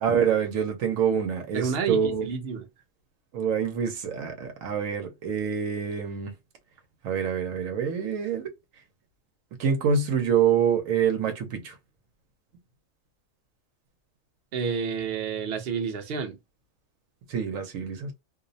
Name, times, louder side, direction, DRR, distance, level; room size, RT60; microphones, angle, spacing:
voice 1, 0.0-2.3 3.3-6.3 7.0-8.5 9.6-11.8 17.3-18.1, right 7 dB, 90° right, 1.1 m, -26 dB
voice 2, 1.5-2.6 14.5-16.4, right 6 dB, 55° right, 0.8 m, -29 dB
2.6 x 2.0 x 2.6 m
omnidirectional pair, 1.4 m